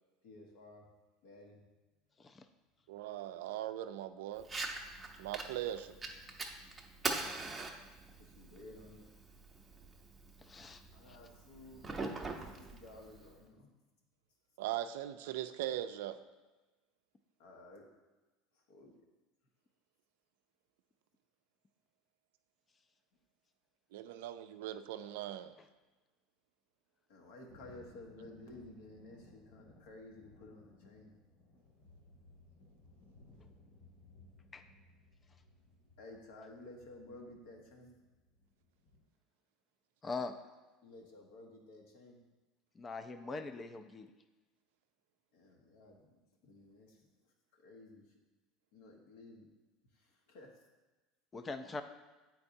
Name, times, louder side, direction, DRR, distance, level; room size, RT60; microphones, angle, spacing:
voice 1, 0.2-0.9 1.2-1.6 8.2-9.1 10.9-13.7 17.4-17.8 18.7-18.9 27.1-31.2 36.0-37.9 40.8-42.2 45.3-46.1 46.4-47.1 47.5-48.0 48.7-49.5 49.9-50.5 51.4-51.5, left 2 dB, 80° left, 0 dB, 1.2 m, -54 dB
voice 2, 2.9-4.5 5.2-6.0 14.6-16.2 23.9-25.6, right 12 dB, 85° right, 10 dB, 0.3 m, -40 dB
Fire, 4.4-13.4, right 3 dB, 15° right, 0.7 m, -43 dB
voice 3, 10.4-10.8 34.5-34.6 40.0-40.3 42.8-44.1 51.3-51.8, left 3 dB, 25° left, 9 dB, 0.4 m, -42 dB
Thunder, 27.5-39.0, left 2 dB, 50° left, 2.0 m, -62 dB
8.4 x 4.5 x 2.7 m, 1.2 s
supercardioid pair, 110°, 0 cm